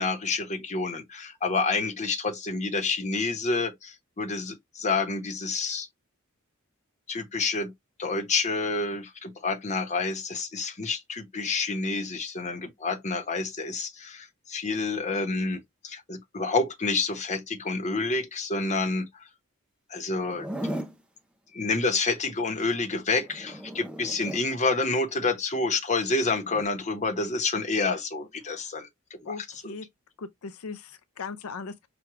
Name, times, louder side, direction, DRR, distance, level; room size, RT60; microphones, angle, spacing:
voice 1, 0.0-5.9 7.1-7.7 8.0-19.2 19.9-20.8 21.5-29.4, left 3 dB, 35° left, 0.9 m, -28 dB
Zipper (clothing), 20.2-21.0 23.2-24.5 26.4-26.6, right 1 dB, 5° right, 0.5 m, -36 dB
voice 2, 29.2-29.9 30.2-31.9, left 4 dB, 85° left, 0.5 m, -38 dB
5.9 x 2.3 x 3.1 m
head